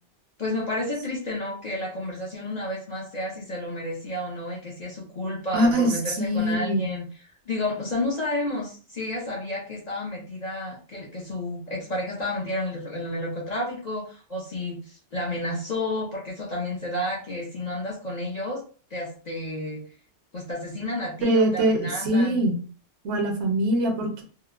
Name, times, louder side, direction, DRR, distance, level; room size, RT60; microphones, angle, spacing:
voice 1, 0.4-7.0 7.5-18.6 18.9-19.8 20.3-22.4, left 1 dB, 45° left, -4 dB, 0.6 m, -31 dB
voice 2, 5.5-6.9 21.2-22.6 23.0-24.2, right 1 dB, 70° right, 4 dB, 0.9 m, -23 dB
2.8 x 2.0 x 2.4 m, 0.39 s
omnidirectional pair, 1.2 m